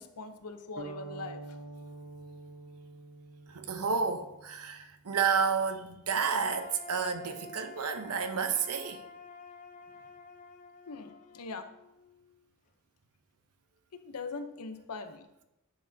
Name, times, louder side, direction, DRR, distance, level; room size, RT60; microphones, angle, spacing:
voice 1, 0.0-1.6 10.9-11.7 13.9-15.3, left 4 dB, 85° left, 0.8 m, -42 dB
sound 1, 0.8-4.7, right 3 dB, 50° right, 1.0 m, -46 dB
voice 2, 3.5-9.0, right 6 dB, 80° right, 0.8 m, -31 dB
sound 2, 6.4-12.4, left 4 dB, 35° left, 0.5 m, -50 dB
9.8 x 6.5 x 2.7 m
head